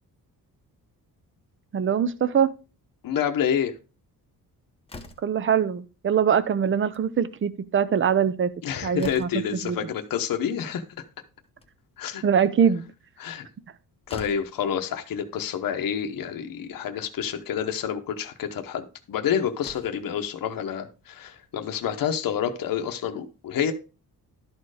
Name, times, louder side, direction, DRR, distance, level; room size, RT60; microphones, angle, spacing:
voice 1, 1.7-2.5 5.2-8.5 8.8-9.9 12.2-12.8, right 7 dB, 35° right, 13 dB, 0.6 m, -23 dB
voice 2, 3.0-3.7 8.6-10.8 12.0-12.2 13.2-13.4 14.1-23.7, left 8 dB, 60° left, 5 dB, 1.0 m, -28 dB
Slam, 4.9-5.5 6.7-7.1 7.4-7.5 7.8-7.9 8.4-9.6 11.3-12.0 13.6-13.7 14.1-14.6 15.7-15.8 16.2-16.3 17.1-17.3 19.0-19.1 19.5-20.1, left 2 dB, 15° left, 0.9 m, -45 dB
12.0 x 4.4 x 4.8 m, 0.33 s
wide cardioid pair, 160°, 38 cm